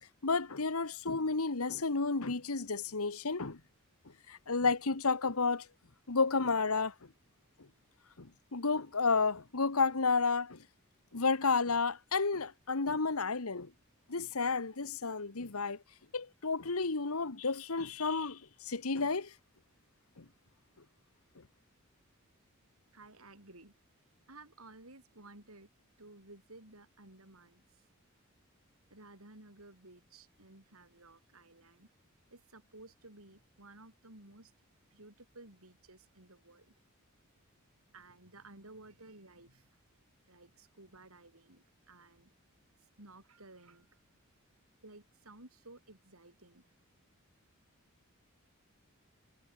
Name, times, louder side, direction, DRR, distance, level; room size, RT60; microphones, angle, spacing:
voice 1, 0.2-3.6 4.3-5.7 6.1-6.9 8.2-10.6 11.1-13.7 14.1-15.8 16.1-19.3 20.2-20.3, left 4 dB, 90° left, 1.4 m, -31 dB
voice 2, 22.9-23.7 24.3-25.7 26.0-27.6 28.9-31.9 32.3-34.5 34.9-36.7 37.9-39.7 40.3-42.3 43.0-43.9 44.8-46.7, right 2 dB, 80° right, 6.5 m, -55 dB
head